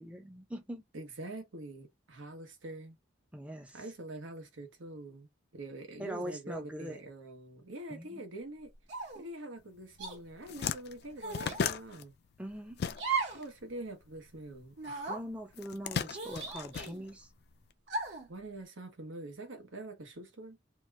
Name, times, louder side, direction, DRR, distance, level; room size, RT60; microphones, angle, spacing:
voice 1, 0.0-0.8 3.3-3.8 6.0-7.0 7.9-8.2 12.4-12.8 15.1-17.3, equal, 5° right, 0.5 m, -42 dB
voice 2, 0.9-3.0 3.7-5.3 5.5-8.7 9.1-12.1 13.3-15.1 18.3-20.6, right 2 dB, 85° right, 1.1 m, -45 dB
sound 1, 8.9-9.3 10.0-10.2 11.2-11.6 13.0-13.5 13.8-13.9 14.8-15.2 16.1-17.0 17.9-18.3, right 4 dB, 60° right, 1.1 m, -36 dB
sound 2, 9.9-10.0 10.3-13.4 13.7-14.9 15.5-17.6, left 6 dB, 55° left, 0.3 m, -36 dB
2.8 x 2.3 x 3.2 m
head